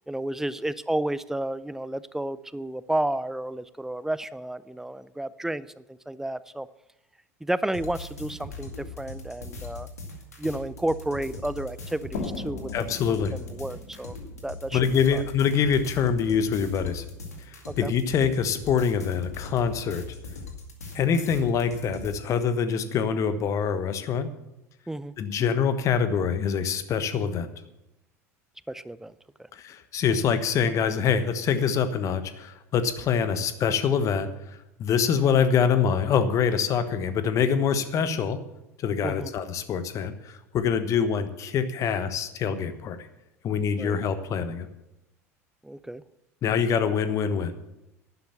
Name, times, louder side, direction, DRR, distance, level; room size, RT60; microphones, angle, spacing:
voice 1, 0.1-6.7 7.4-9.9 10.4-12.9 13.3-14.2 14.4-14.8 15.1-15.2 17.7-17.9 24.9-25.1 28.7-29.1 39.0-39.3 43.7-44.0 45.6-46.0, right 1 dB, 5° right, 17 dB, 0.6 m, -31 dB
sound 1, 7.7-22.2, left 3 dB, 80° left, 2.1 m, -40 dB
sound 2, 12.1-15.7, left 4 dB, 60° left, 2.0 m, -39 dB
voice 2, 12.7-13.3 14.7-17.0 17.8-20.0 20.9-24.3 25.2-27.5 29.5-34.3 34.8-38.4 38.8-43.0 43.4-44.7 46.4-47.5, left 7 dB, 40° left, 11 dB, 1.2 m, -25 dB
11.5 x 11.0 x 6.9 m, 0.89 s
figure-of-eight pair, 70°, 8 cm